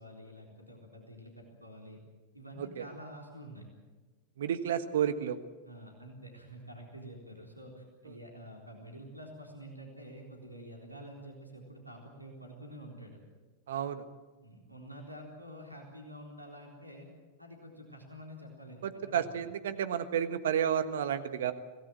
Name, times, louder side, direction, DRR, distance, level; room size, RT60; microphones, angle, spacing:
voice 1, 0.0-2.0 2.3-3.7 5.6-13.2 14.4-17.1 17.4-19.3, equal, 90° right, 1 dB, 3.8 m, -48 dB
voice 2, 4.4-5.4 13.7-14.0 18.8-21.5, right 9 dB, 60° right, 12 dB, 1.4 m, -31 dB
25.0 x 18.0 x 7.8 m, 1.3 s
figure-of-eight pair, 90°, 0 cm